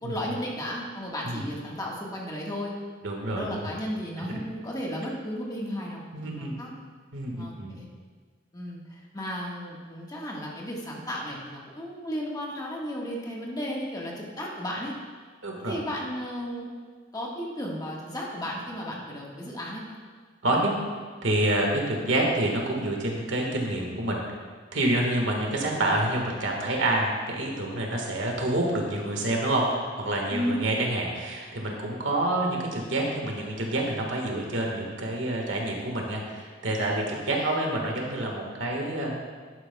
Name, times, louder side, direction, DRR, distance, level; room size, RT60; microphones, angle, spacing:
voice 1, 0.0-2.7 3.3-6.7 7.4-7.9 8.5-14.9 15.6-16.7 17.1-20.0 30.3-30.6 37.1-37.7, equal, 20° left, -3 dB, 1.4 m, -34 dB
voice 2, 3.0-3.7 4.3-4.4 6.1-6.5 7.1-7.8 15.4-15.7 20.4-20.7 21.2-24.2 24.7-39.1, right 1 dB, 75° right, 0 dB, 1.6 m, -27 dB
11.0 x 9.4 x 2.3 m, 1.5 s
head